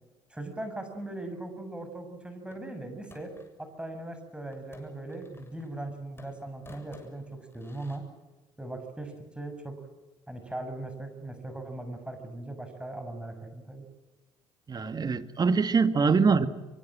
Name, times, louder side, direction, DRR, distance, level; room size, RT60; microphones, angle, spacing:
voice 1, 0.3-3.3 3.6-8.1 8.6-9.8 10.3-13.8, right 2 dB, 10° right, 7 dB, 7.4 m, -39 dB
sound 1, 2.5-3.6 4.5-5.9 6.2-8.0, left 3 dB, 20° left, 7.3 m, -53 dB
voice 2, 14.7-16.5, right 5 dB, 35° right, 10 dB, 2.1 m, -23 dB
25.5 x 24.0 x 7.7 m, 1.1 s
hypercardioid pair, 60°, 11 cm